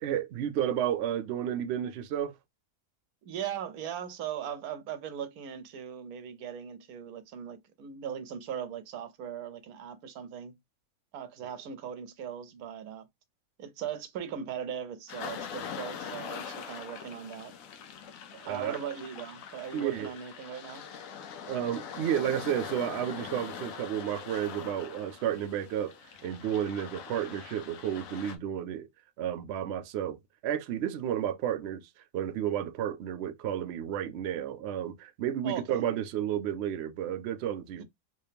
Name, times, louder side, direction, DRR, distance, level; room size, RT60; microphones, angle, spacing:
voice 1, 0.0-2.3 18.4-18.8 19.7-20.1 21.5-25.9 26.2-28.9 29.2-31.8 32.1-37.8, right 10 dB, 65° right, 0.6 m, -32 dB
voice 2, 3.2-10.6 11.1-13.1 13.6-17.6 18.4-20.9 35.4-35.8 37.7-37.8, right 8 dB, 85° right, 1.1 m, -39 dB
sound 1, 15.1-28.4, left 7 dB, 70° left, 1.0 m, -42 dB
3.1 x 2.8 x 3.3 m
omnidirectional pair, 1.5 m